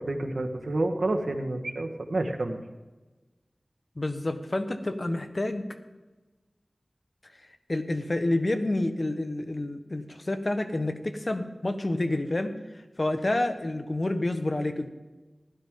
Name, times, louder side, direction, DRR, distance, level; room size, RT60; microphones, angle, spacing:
voice 1, 0.0-2.6, right 2 dB, 80° right, 4 dB, 1.4 m, -29 dB
voice 2, 4.0-5.7 7.7-14.9, left 1 dB, 45° left, 8 dB, 1.1 m, -29 dB
16.0 x 12.5 x 3.8 m, 1.2 s
wide cardioid pair, 60°, 0 cm